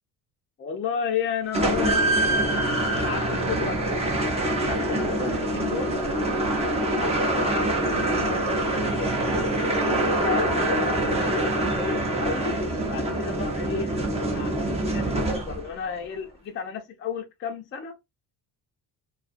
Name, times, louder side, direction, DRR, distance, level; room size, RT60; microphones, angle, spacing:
voice 1, 0.6-2.5 3.0-3.8 4.2-6.0 7.0-9.2 9.8-12.6 12.9-13.9 14.3-14.6 14.9-18.0, left 6 dB, 30° left, 0.5 m, -33 dB
sound 1, 1.5-15.8, right 1 dB, 15° right, 0.7 m, -25 dB
2.3 x 2.3 x 2.5 m
cardioid pair, 145°, 37 cm